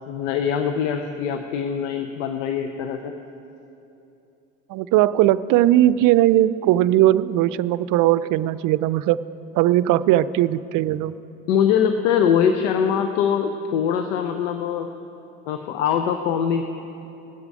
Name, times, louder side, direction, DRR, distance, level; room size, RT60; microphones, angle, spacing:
voice 1, 0.1-3.1 11.5-14.9 15.5-16.6, left 8 dB, 85° left, 6 dB, 0.7 m, -22 dB
voice 2, 4.7-9.2 9.5-11.2, right 14 dB, 60° right, 16 dB, 0.5 m, -18 dB
20.0 x 8.1 x 4.9 m, 2.8 s
hypercardioid pair, 70°, 36 cm